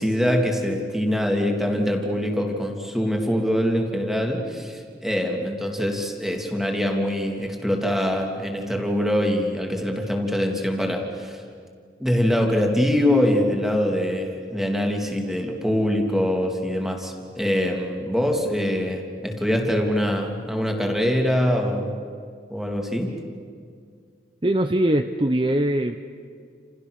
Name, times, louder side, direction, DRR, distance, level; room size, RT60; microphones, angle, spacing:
voice 1, 0.0-11.4 12.0-22.0 22.5-23.2, equal, ahead, 2 dB, 3.0 m, -24 dB
voice 2, 24.4-26.0, right 1 dB, 30° right, 7 dB, 0.8 m, -21 dB
29.5 x 29.0 x 6.7 m, 2.2 s
head